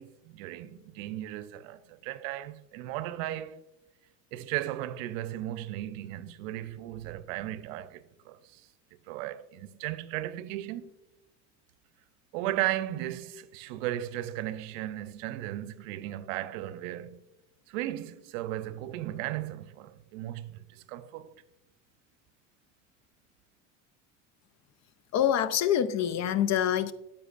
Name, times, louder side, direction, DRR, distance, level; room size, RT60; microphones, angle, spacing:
voice 1, 0.0-3.6 4.3-8.6 9.1-10.9 12.3-17.2 17.7-21.3, right 14 dB, 80° right, 0.6 m, -36 dB
voice 2, 25.1-26.9, left 10 dB, 45° left, 0.5 m, -25 dB
10.0 x 7.1 x 2.5 m
supercardioid pair, 85°, 38 cm